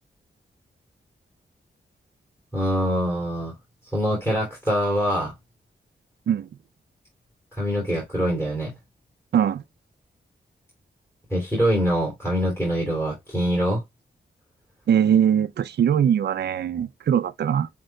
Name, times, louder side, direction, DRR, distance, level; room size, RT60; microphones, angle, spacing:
voice 1, 2.5-3.5 3.9-5.3 7.5-8.7 11.3-13.8, equal, 15° left, 3.1 m, -24 dB
voice 2, 9.3-9.6 14.9-17.7, right 9 dB, 65° right, 0.4 m, -21 dB
7.5 x 2.9 x 2.2 m
cardioid pair, 75°, 18 cm